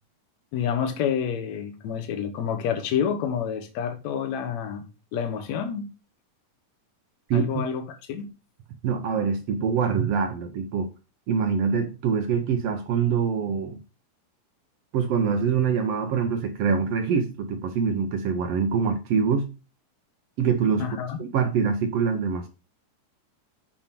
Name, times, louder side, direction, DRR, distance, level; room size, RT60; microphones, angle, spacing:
voice 1, 0.5-4.8 5.1-5.9 7.3-8.3 20.8-21.2, left 8 dB, 65° left, 2.1 m, -28 dB
voice 2, 7.3-7.6 8.8-10.9 11.3-13.8 14.9-19.5 20.4-20.9 21.2-22.5, right 6 dB, 75° right, 1.5 m, -24 dB
7.4 x 5.4 x 4.5 m
omnidirectional pair, 3.8 m